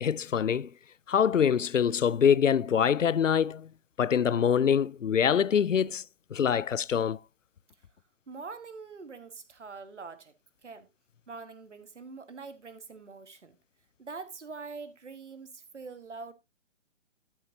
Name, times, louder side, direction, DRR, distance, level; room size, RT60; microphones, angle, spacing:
voice 1, 0.0-0.7 1.1-3.7 4.0-6.0 6.3-7.2, left 8 dB, 85° left, 0.5 m, -24 dB
voice 2, 8.3-10.3 10.6-10.9 11.3-13.6 14.0-16.3, right 4 dB, 70° right, 1.5 m, -44 dB
12.5 x 7.4 x 2.7 m
figure-of-eight pair, 135°, 37 cm